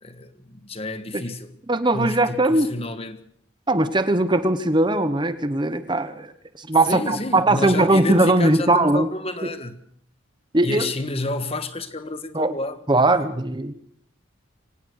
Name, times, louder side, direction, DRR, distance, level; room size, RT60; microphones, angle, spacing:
voice 1, 0.0-1.5 1.9-3.2 6.9-9.8 10.6-12.8 13.2-13.3, left 2 dB, 30° left, 1.5 m, -30 dB
voice 2, 1.7-2.7 3.7-6.3 6.6-9.1 9.4-9.5 10.5-10.9 12.3-12.5 12.9-13.7, right 2 dB, 25° right, 1.1 m, -20 dB
24.0 x 18.0 x 6.5 m
head